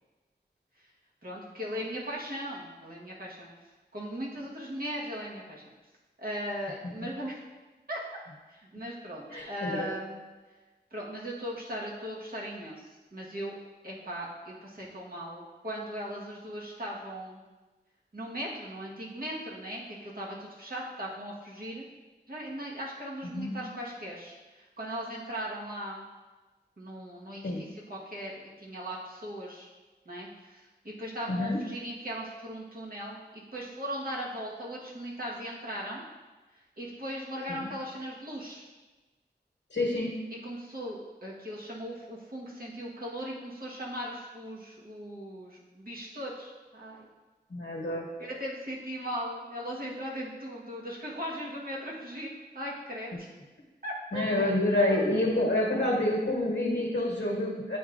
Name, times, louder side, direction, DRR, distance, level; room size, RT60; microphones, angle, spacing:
voice 1, 1.2-3.5 3.9-5.6 6.2-7.4 7.9-8.0 8.5-10.2 10.9-13.6 13.8-17.4 18.1-21.8 22.3-26.0 26.8-29.7 30.0-36.0 36.8-38.6 40.4-47.1 48.2-53.3 53.8-54.5 54.9-55.0, equal, 55° right, -4 dB, 1.4 m, -38 dB
voice 2, 9.3-9.9 23.3-23.6 27.4-27.6 31.3-31.6 37.5-37.7 39.7-40.1 47.5-48.0 54.1-57.8, left 1 dB, 90° left, -3 dB, 1.2 m, -28 dB
9.1 x 4.5 x 2.5 m, 1.2 s
wide cardioid pair, 60°, 18 cm